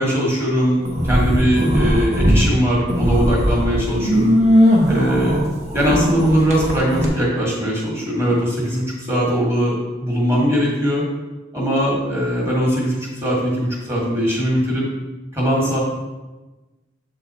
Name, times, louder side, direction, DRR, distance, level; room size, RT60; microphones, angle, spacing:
voice 1, 0.0-4.4 4.9-5.4 5.7-11.0 11.5-14.8 15.3-15.8, equal, 15° right, -3 dB, 1.4 m, -20 dB
sound 1, 0.8-2.4 2.8-7.1, equal, 35° right, 1.0 m, -18 dB
7.6 x 3.9 x 4.1 m, 1.2 s
head